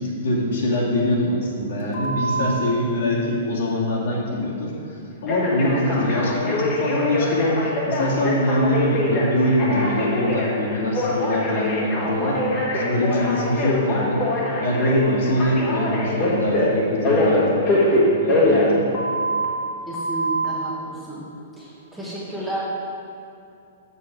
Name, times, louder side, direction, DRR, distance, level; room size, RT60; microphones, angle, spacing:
voice 1, 0.0-12.4 12.7-14.2 14.6-18.8, left 1 dB, 60° left, -4 dB, 2.2 m, -23 dB
Telephone, 1.9-2.5 5.3-19.5 19.9-20.5, left 1 dB, 20° left, 1.2 m, -23 dB
voice 2, 19.9-21.3 21.5-22.6, right 2 dB, ahead, -8 dB, 0.9 m, -32 dB
7.2 x 6.9 x 6.0 m, 2.5 s
hypercardioid pair, 180°, 0 cm